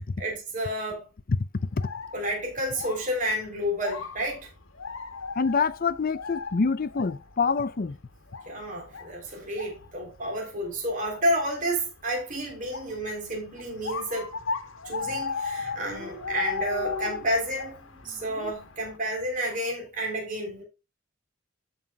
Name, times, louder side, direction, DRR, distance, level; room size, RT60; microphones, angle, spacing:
voice 1, 0.2-1.1 2.1-4.5 8.5-14.4 14.8-17.8 18.0-20.6, equal, 40° right, 3.6 m, -30 dB
sound 1, 1.6-19.0, left 5 dB, 75° left, 1.3 m, -38 dB
voice 2, 5.4-8.0, left 5 dB, 45° left, 0.5 m, -26 dB
Dog, 12.3-12.6 12.9-13.0 13.2-13.9 14.5-14.8 15.1-15.2 15.3-15.4 15.6-18.5, left 4 dB, 5° right, 4.7 m, -42 dB
14.5 x 5.5 x 2.3 m
head